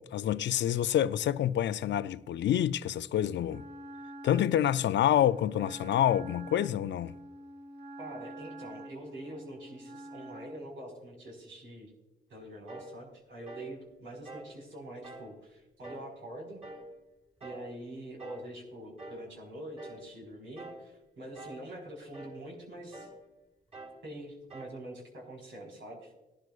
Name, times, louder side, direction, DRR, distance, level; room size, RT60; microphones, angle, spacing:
voice 1, 0.0-3.6 4.2-7.1, left 11 dB, 70° left, 0.5 m, -27 dB
Wind instrument woodwind instrument, 3.4-10.7, right 1 dB, 60° right, 1.0 m, -46 dB
voice 2, 8.0-11.9 12.3-16.6 17.4-23.1 24.0-26.1, right 1 dB, 80° right, 4.6 m, -45 dB
sound 1, 12.7-13.0 13.4-13.7 14.2-14.5 15.0-15.3 15.8-16.1 16.6-16.9 17.4-17.7 18.2-18.5 19.0-19.3 19.8-20.1 20.6-20.9 21.3-21.7 22.1-22.4 22.9-23.2 23.7-24.0 24.5-24.8, right 2 dB, 30° right, 4.6 m, -46 dB
19.0 x 12.0 x 2.4 m
cardioid pair, 60°, 20 cm